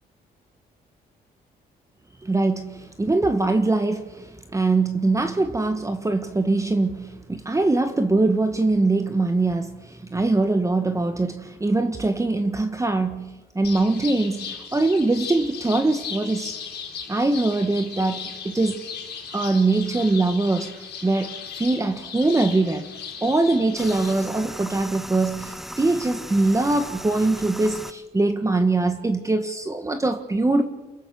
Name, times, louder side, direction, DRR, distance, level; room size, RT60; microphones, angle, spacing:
voice 1, 2.2-16.5 17.1-18.8 19.3-22.8 23.2-30.6, right 2 dB, 20° right, 1.5 m, -22 dB
sound 1, 13.6-24.1, left 6 dB, 80° left, 4.3 m, -37 dB
sound 2, 23.8-27.9, equal, ahead, 1.0 m, -37 dB
29.0 x 15.0 x 6.2 m
cardioid pair, 90°, 17 cm